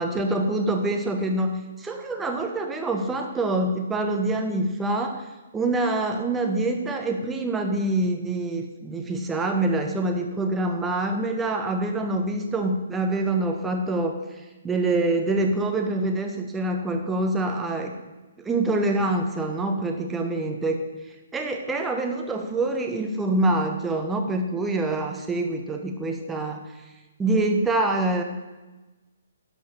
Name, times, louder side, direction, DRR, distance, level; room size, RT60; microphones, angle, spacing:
voice 1, 0.0-5.3 5.5-14.2 14.6-18.0 18.4-20.8 21.3-26.7 27.2-28.2, right 2 dB, 10° right, 3 dB, 1.2 m, -25 dB
12.0 x 5.0 x 6.9 m, 1.1 s
figure-of-eight pair, 130°, 0 cm